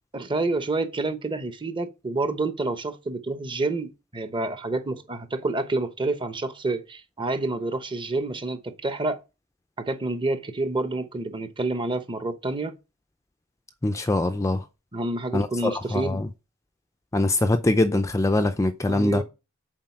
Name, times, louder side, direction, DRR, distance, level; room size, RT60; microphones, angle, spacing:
voice 1, 0.1-9.2 9.8-12.7 14.9-16.2 18.9-19.2, right 2 dB, 25° right, 0.9 m, -28 dB
voice 2, 13.8-14.6 15.3-16.3 17.1-19.2, left 2 dB, 15° left, 0.5 m, -23 dB
7.4 x 4.7 x 6.0 m
head